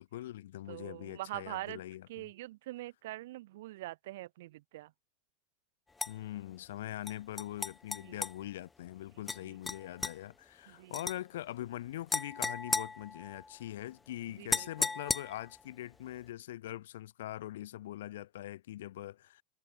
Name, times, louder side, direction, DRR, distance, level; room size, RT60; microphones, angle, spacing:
voice 1, 0.0-2.3 6.1-19.4, left 14 dB, 85° left, 1.8 m, -43 dB
voice 2, 0.7-1.8 2.1-4.9 8.0-8.2 9.4-9.5 10.7-10.9 14.4-15.0, right 17 dB, 70° right, 4.0 m, -44 dB
sound 1, 6.0-6.1 7.1-8.3 9.3-9.4 9.7-10.1 10.9-11.2 12.1-13.6 14.5-15.6, left 4 dB, 10° left, 0.9 m, -35 dB
supercardioid pair, 160°, 0 cm